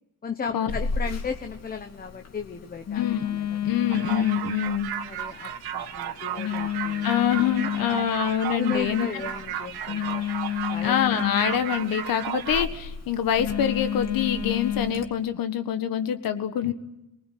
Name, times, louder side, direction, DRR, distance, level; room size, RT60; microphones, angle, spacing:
voice 1, 0.2-3.6 4.0-4.1 4.7-4.8 5.0-7.1 8.5-10.3 10.7-11.0, left 6 dB, 25° left, 7 dB, 1.0 m, -35 dB
Telephone, 0.7-15.1, left 8 dB, 45° left, 2.7 m, -32 dB
voice 2, 3.6-4.9 7.0-9.1 10.8-16.7, left 9 dB, 65° left, 8 dB, 1.7 m, -25 dB
sound 1, 3.9-12.6, right 10 dB, 90° right, 1.7 m, -34 dB
27.5 x 20.0 x 9.3 m, 0.92 s
cardioid pair, 160°, 36 cm